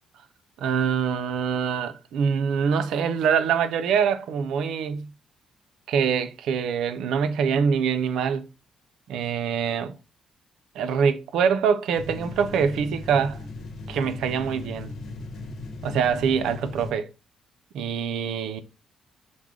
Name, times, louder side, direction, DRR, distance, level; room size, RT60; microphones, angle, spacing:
voice 1, 0.6-5.1 5.9-8.5 9.1-9.9 10.7-13.4 13.9-14.9 15.8-17.1 17.7-18.6, right 7 dB, 80° right, 0.5 m, -24 dB
sound 1, 11.9-16.9, left 2 dB, 60° left, 0.9 m, -38 dB
6.2 x 2.2 x 3.6 m
cardioid pair, 90°, 0 cm